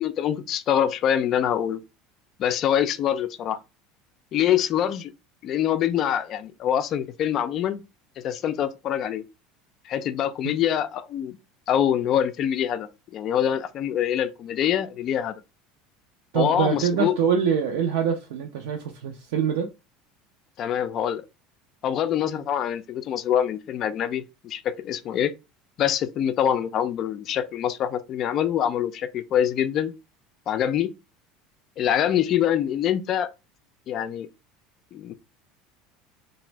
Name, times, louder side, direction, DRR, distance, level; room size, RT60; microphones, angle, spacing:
voice 1, 0.0-1.8 2.4-3.6 4.3-5.1 5.4-7.8 8.2-9.2 9.9-11.4 11.7-15.4 16.3-17.1 20.6-21.2 21.8-25.3 25.8-29.9 30.5-30.9 31.8-33.3 33.9-34.3 34.9-35.1, left 10 dB, 50° left, 0.4 m, -25 dB
voice 2, 16.3-19.7, right 7 dB, 75° right, 0.4 m, -24 dB
2.5 x 2.0 x 3.1 m
hypercardioid pair, 85°, 0 cm